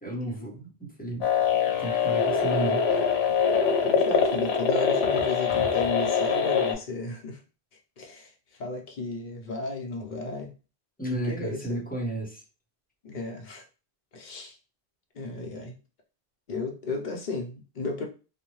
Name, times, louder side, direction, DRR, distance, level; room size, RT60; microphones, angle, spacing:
voice 1, 0.0-2.8 11.0-12.4, right 1 dB, 10° left, -2 dB, 0.7 m, -33 dB
sound 1, 1.2-6.7, left 6 dB, 85° left, 0.9 m, -24 dB
voice 2, 3.8-7.4 8.0-8.3 8.6-10.5 11.1-11.8 13.0-13.6 14.1-14.6 15.1-15.8 16.5-18.0, left 3 dB, 50° left, 2 dB, 0.7 m, -34 dB
2.7 x 2.1 x 3.0 m, 0.33 s
omnidirectional pair, 1.1 m